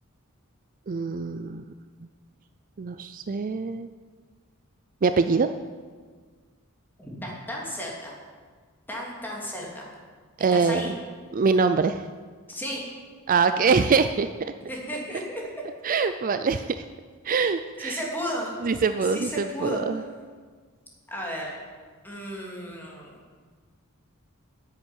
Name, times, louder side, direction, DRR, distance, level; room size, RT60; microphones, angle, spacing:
voice 1, 0.9-1.6 2.8-3.9 5.0-5.5 10.4-10.9 11.3-12.0 13.3-14.5 15.8-16.8 17.2-18.0 18.6-20.0, right 5 dB, 40° right, 10 dB, 0.4 m, -24 dB
voice 2, 7.0-8.2 8.9-9.9 10.5-10.9 12.5-12.8 14.7-15.4 17.8-18.5 19.0-19.8 21.1-21.6 22.0-23.2, equal, 10° left, -3 dB, 2.9 m, -34 dB
10.0 x 8.1 x 9.5 m, 1.5 s
head